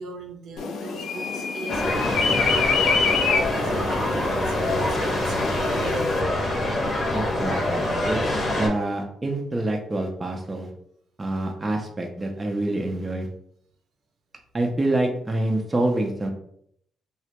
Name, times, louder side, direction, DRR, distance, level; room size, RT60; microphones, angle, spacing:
voice 1, 0.0-6.1 7.4-8.1, right 2 dB, 65° right, 2 dB, 0.6 m, -39 dB
sound 1, 0.6-6.2, left 5 dB, 70° left, 0.3 m, -27 dB
sound 2, 1.7-8.7, left 1 dB, 35° left, 0.7 m, -25 dB
voice 2, 7.1-10.7 11.2-13.3 14.5-16.3, right 1 dB, 20° right, 1 dB, 0.4 m, -26 dB
2.1 x 2.1 x 2.8 m, 0.69 s
cardioid pair, 90°, 0 cm